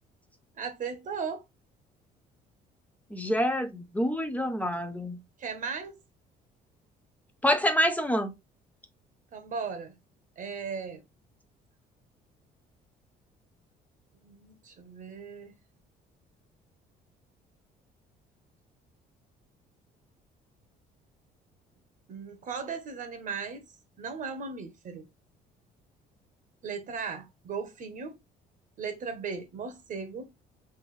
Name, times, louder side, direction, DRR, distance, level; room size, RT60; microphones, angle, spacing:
voice 1, 0.6-1.4 5.4-5.9 9.3-9.9 10.4-11.0 14.2-15.6 22.1-23.6 24.0-25.1 26.6-28.2 28.8-30.3, right 5 dB, 50° right, 1.1 m, -37 dB
voice 2, 3.1-5.2 7.4-8.3, equal, 10° left, 0.7 m, -27 dB
3.4 x 3.0 x 3.2 m
cardioid pair, 110°, 17 cm